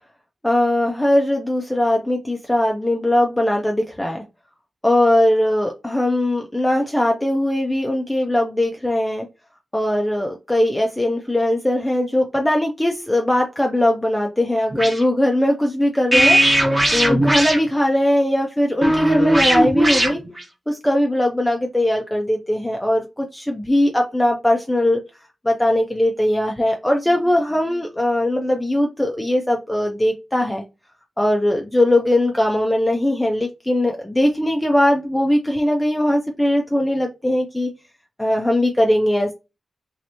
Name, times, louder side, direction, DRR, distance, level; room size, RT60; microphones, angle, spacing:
voice 1, 0.4-4.2 4.8-9.3 9.7-16.6 16.9-20.2 20.7-25.0 25.4-30.6 31.2-37.7 38.2-39.3, left 1 dB, 10° left, 1 dB, 0.4 m, -20 dB
sound 1, 14.7-15.0 16.1-17.6 18.8-20.4, right 1 dB, 20° right, 1.0 m, -18 dB
3.1 x 2.9 x 2.7 m, 0.27 s
wide cardioid pair, 115°, 0 cm